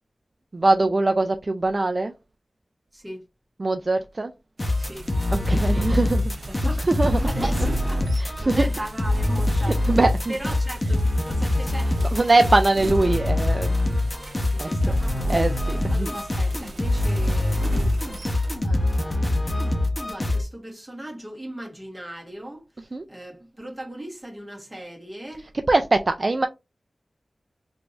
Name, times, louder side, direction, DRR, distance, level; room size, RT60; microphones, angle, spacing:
voice 1, 0.5-2.1 3.6-4.3 5.3-6.2 6.8-7.2 8.2-8.6 9.7-10.3 12.1-13.7 14.6-14.7 15.3-16.1 22.9-23.0 25.7-26.5, right 2 dB, 40° right, 0.3 m, -22 dB
voice 2, 2.9-3.2 4.8-5.1 5.7-10.0 10.3-12.2 14.4-22.7 23.1-25.5, right 1 dB, 15° right, 1.4 m, -38 dB
sound 1, 4.6-20.4, left 1 dB, 25° left, 0.8 m, -24 dB
sound 2, 4.6-18.6, right 2 dB, 75° right, 0.7 m, -38 dB
3.4 x 2.5 x 3.0 m
wide cardioid pair, 90°, 0 cm